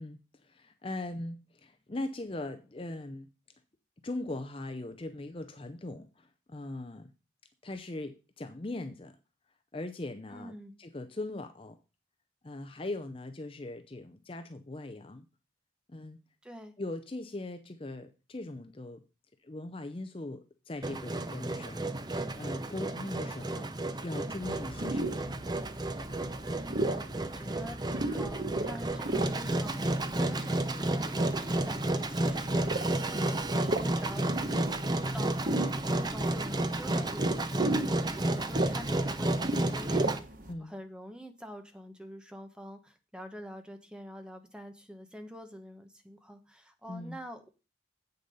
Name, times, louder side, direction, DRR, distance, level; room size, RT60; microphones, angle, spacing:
voice 1, 0.0-3.3 4.0-7.1 7.6-9.2 9.7-10.5 10.8-11.8 12.4-15.3 15.9-16.2 16.8-19.0 19.4-25.5 40.5-40.7 46.9-47.2, left 2 dB, 30° left, 8 dB, 0.6 m, -40 dB
voice 2, 10.3-10.8 16.4-16.7 26.6-34.8 35.1-40.2 40.6-47.5, equal, 5° right, 6 dB, 1.0 m, -46 dB
Engine, 20.8-40.2, right 1 dB, 20° right, 0.6 m, -32 dB
sound 1, 24.4-40.5, right 2 dB, 45° right, 1.0 m, -36 dB
8.1 x 6.6 x 5.4 m, 0.31 s
head